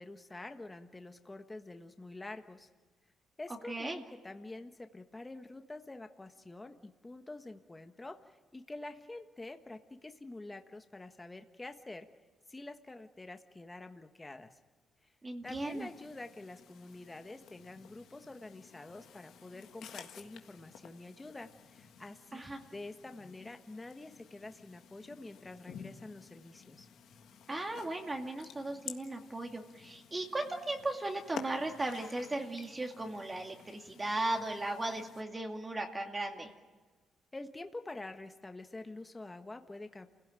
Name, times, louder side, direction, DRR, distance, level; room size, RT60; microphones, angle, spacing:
voice 1, 0.0-2.7 3.4-12.1 12.5-14.6 15.4-22.5 22.7-26.9 37.3-40.1, left 2 dB, 15° left, 7 dB, 1.4 m, -47 dB
voice 2, 3.7-4.0 15.2-15.9 22.3-22.6 27.5-36.5, right 2 dB, 20° right, 2 dB, 2.3 m, -37 dB
sound 1, 15.4-35.2, left 8 dB, 75° left, 1.7 m, -53 dB
29.0 x 17.0 x 9.1 m, 1.4 s
cardioid pair, 90°, 0 cm